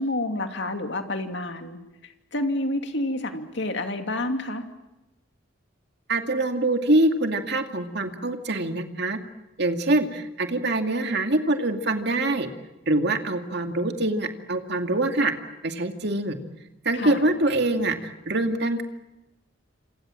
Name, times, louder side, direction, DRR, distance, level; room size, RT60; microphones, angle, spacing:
voice 1, 0.0-4.6 16.9-17.2, left 1 dB, 60° left, 6 dB, 2.7 m, -29 dB
voice 2, 6.1-9.2 9.6-12.5 12.9-15.3 15.6-16.4 16.8-18.8, right 2 dB, 55° right, 6 dB, 2.4 m, -24 dB
27.5 x 27.0 x 7.7 m, 0.99 s
head